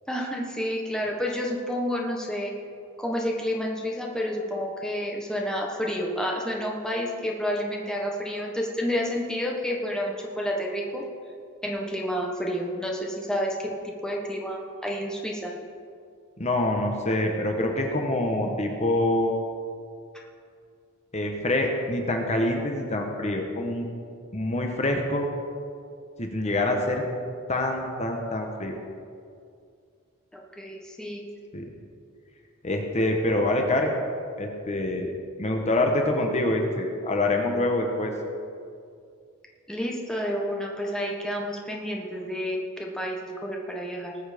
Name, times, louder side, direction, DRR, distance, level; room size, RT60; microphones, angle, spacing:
voice 1, 0.1-2.5 3.0-11.0 11.6-15.5 30.3-31.2 39.7-44.2, equal, 5° left, -1 dB, 1.2 m, -30 dB
voice 2, 16.4-19.3 21.1-23.9 24.3-25.3 26.2-27.0 27.5-28.7 31.5-31.6 32.6-33.9 34.4-35.1 35.4-38.1, left 1 dB, 30° left, 2 dB, 1.2 m, -25 dB
19.5 x 7.2 x 5.2 m, 2.3 s
head